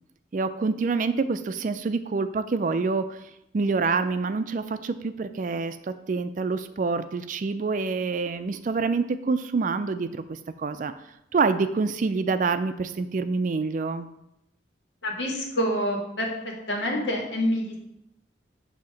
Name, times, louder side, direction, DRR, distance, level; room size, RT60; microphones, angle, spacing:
voice 1, 0.3-3.2 3.5-10.9 11.3-14.1, right 4 dB, 45° right, 11 dB, 0.4 m, -26 dB
voice 2, 15.0-16.3 16.7-17.8, equal, 85° left, 0 dB, 1.5 m, -27 dB
7.5 x 2.8 x 5.7 m, 0.85 s
head